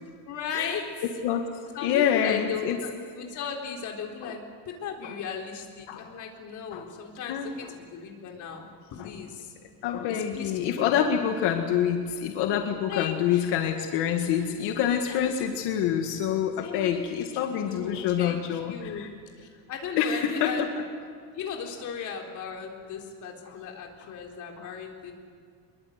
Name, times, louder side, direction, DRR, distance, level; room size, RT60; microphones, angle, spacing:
voice 1, 0.3-0.9 1.7-9.5 10.1-10.5 10.8-10.9 12.9-13.5 15.1-15.3 16.6-17.0 17.4-19.1 19.7-20.8 21.3-25.1, left 6 dB, 50° left, 1 dB, 3.9 m, -37 dB
voice 2, 1.8-2.8 4.2-4.3 5.0-5.1 5.9-6.1 6.7-6.8 7.3-7.5 9.0-9.1 9.8-19.1 20.0-20.7 23.5-23.6 24.6-24.7, left 9 dB, 85° left, 4 dB, 1.9 m, -26 dB
23.5 x 22.0 x 8.2 m, 2.2 s
cardioid pair, 175°, 39 cm